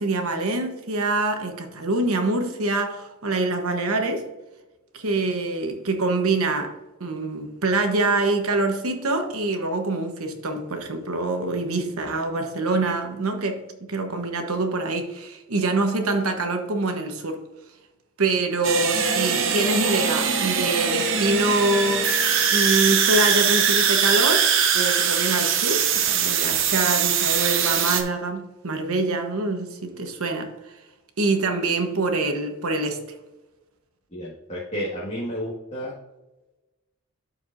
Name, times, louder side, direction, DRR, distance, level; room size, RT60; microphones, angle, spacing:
voice 1, 0.0-4.3 4.9-17.4 18.2-22.1 22.5-30.7 31.2-33.0, right 2 dB, 85° right, 1.1 m, -25 dB
sound 1, 18.6-28.0, right 7 dB, 60° right, 0.8 m, -22 dB
voice 2, 34.1-35.9, equal, 30° left, 1.8 m, -31 dB
12.0 x 4.7 x 2.6 m
head